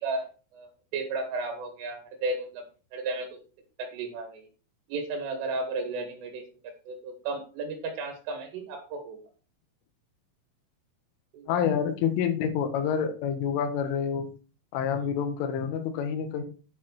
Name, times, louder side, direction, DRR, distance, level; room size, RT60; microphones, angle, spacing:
voice 1, 0.0-2.7 2.9-3.4 3.8-4.5 4.9-6.4 6.9-9.2 11.3-11.5 15.0-15.1, right 3 dB, 85° right, 5 dB, 4.4 m, -34 dB
voice 2, 11.5-14.3 14.7-16.4, left 7 dB, 85° left, 6 dB, 3.9 m, -28 dB
9.6 x 7.8 x 4.5 m, 0.36 s
omnidirectional pair, 5.6 m